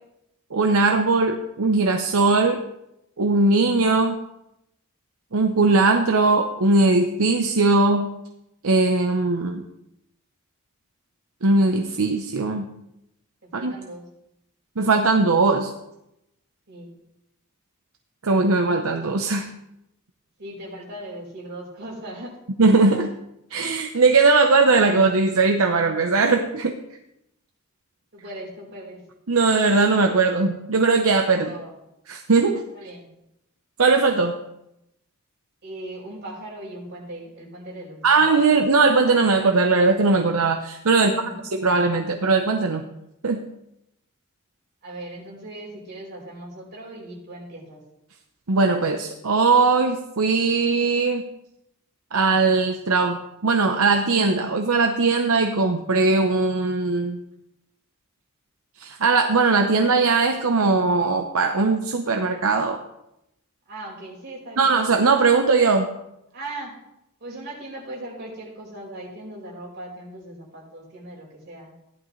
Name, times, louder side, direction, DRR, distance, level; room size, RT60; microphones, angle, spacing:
voice 1, 0.5-2.6 3.2-4.2 5.3-8.1 8.6-9.7 11.4-12.7 13.5-13.7 14.8-15.7 18.2-19.5 22.6-23.1 23.5-26.7 29.3-31.5 32.1-32.6 33.8-34.4 38.0-41.1 41.5-42.8 43.2-43.4 48.5-51.2 52.1-57.2 58.8-62.8 64.6-65.9, right 3 dB, 75° right, 4 dB, 0.8 m, -19 dB
voice 2, 13.4-14.1 16.7-16.9 20.4-22.4 28.1-29.0 31.3-31.7 32.7-33.1 35.6-38.3 41.0-41.4 44.8-47.8 63.7-64.7 66.3-66.8 67.2-71.7, right 1 dB, 50° right, -4 dB, 4.9 m, -38 dB
15.5 x 11.0 x 3.2 m, 0.85 s
head